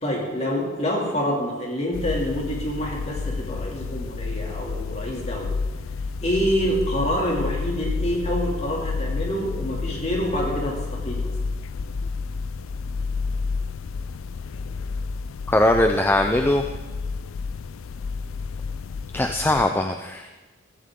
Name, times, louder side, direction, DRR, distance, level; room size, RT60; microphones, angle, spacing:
voice 1, 0.0-5.5 6.2-11.3, equal, 30° left, -1 dB, 2.6 m, -27 dB
sound 1, 1.9-19.6, left 4 dB, 75° left, 0.4 m, -30 dB
voice 2, 15.5-16.6 19.1-20.3, left 1 dB, 10° left, 5 dB, 0.4 m, -20 dB
15.0 x 14.5 x 3.7 m, 1.2 s
head